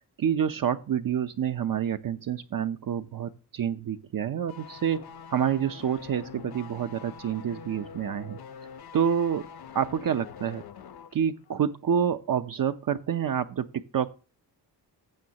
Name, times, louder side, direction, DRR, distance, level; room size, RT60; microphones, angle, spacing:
voice 1, 0.2-5.0 5.3-8.4 8.9-9.5 9.7-10.6 11.1-14.1, right 8 dB, 50° right, 8 dB, 0.8 m, -28 dB
sound 1, 4.5-11.2 11.4-11.6, left 7 dB, 60° left, 1.1 m, -45 dB
16.0 x 6.2 x 2.9 m, 0.36 s
cardioid pair, 60°, 43 cm